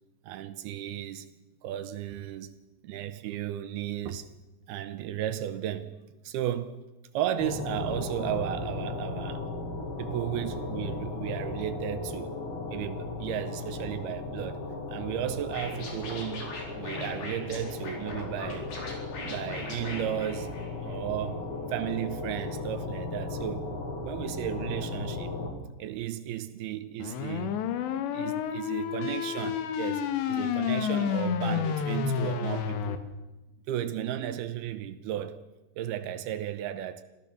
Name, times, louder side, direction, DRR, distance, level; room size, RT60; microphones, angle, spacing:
voice 1, 0.2-1.3 1.6-2.5 2.8-4.3 4.7-5.9 6.2-6.8 7.1-9.5 10.0-12.3 12.7-14.6 14.9-16.5 16.8-18.7 19.2-23.7 24.0-25.3 25.8-27.6 27.9-33.0 33.7-35.4 35.8-37.0, right 11 dB, 75° right, 2.5 m, -34 dB
sound 1, 7.4-25.5, left 3 dB, 40° left, 2.2 m, -36 dB
Scratching (performance technique), 15.5-21.0, left 3 dB, 60° left, 5.8 m, -41 dB
sound 2, 27.0-33.0, left 8 dB, 80° left, 3.4 m, -30 dB
25.0 x 15.0 x 7.0 m
omnidirectional pair, 5.1 m